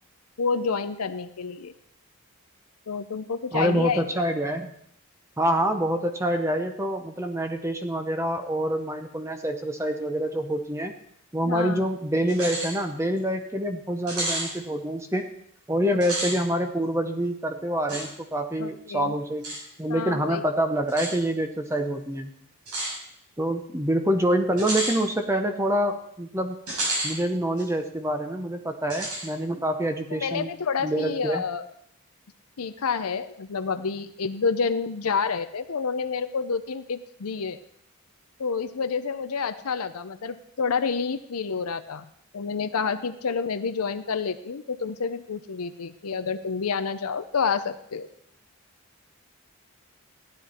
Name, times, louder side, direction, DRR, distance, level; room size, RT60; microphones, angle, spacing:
voice 1, 0.4-1.7 2.9-4.0 11.4-11.8 18.6-19.1 19.9-20.4 30.1-31.7 32.6-37.6 38.4-42.1 42.3-48.1, left 5 dB, 90° left, 10 dB, 0.6 m, -29 dB
voice 2, 3.5-4.7 5.4-10.9 11.3-15.3 15.7-19.5 19.8-22.3 23.4-26.6 27.0-30.5 30.8-31.4, right 1 dB, 15° right, 6 dB, 0.7 m, -26 dB
sound 1, 12.3-12.7 13.2-13.3 14.1-14.5 15.9-16.4 17.9-18.0 19.4-19.6 20.9-21.1 22.7-22.9 24.6-25.0 26.7-27.1 27.6-27.7 28.9-29.3, right 1 dB, 90° right, 5.9 m, -30 dB
15.0 x 10.0 x 4.3 m, 0.70 s
head